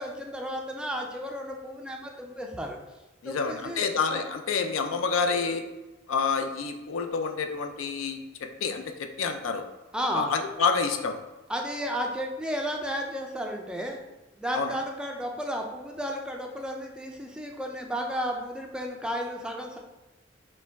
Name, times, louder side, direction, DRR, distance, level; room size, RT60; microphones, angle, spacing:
voice 1, 0.0-2.8 3.2-3.8 9.9-10.3 11.5-14.0 14.4-19.8, equal, 5° right, 1 dB, 0.3 m, -33 dB
voice 2, 3.2-5.6 6.1-8.2 8.6-9.6 10.1-11.2 14.5-14.8, left 5 dB, 80° left, 6 dB, 0.4 m, -28 dB
5.2 x 2.2 x 3.4 m, 1.1 s
head